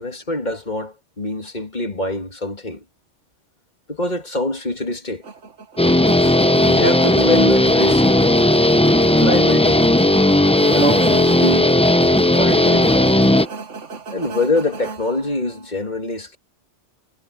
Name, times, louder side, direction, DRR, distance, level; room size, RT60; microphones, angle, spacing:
voice 1, 0.0-2.8 3.9-5.2 6.2-6.4 6.7-8.1 9.1-9.8 10.7-11.8 12.3-13.1 14.1-16.4, left 2 dB, 40° left, 2.5 m, -24 dB
sound 1, 5.2-15.7, right 4 dB, 85° right, 1.9 m, -34 dB
Guitar, 5.8-13.5, left 1 dB, 10° left, 0.4 m, -15 dB
omnidirectional pair, 1.2 m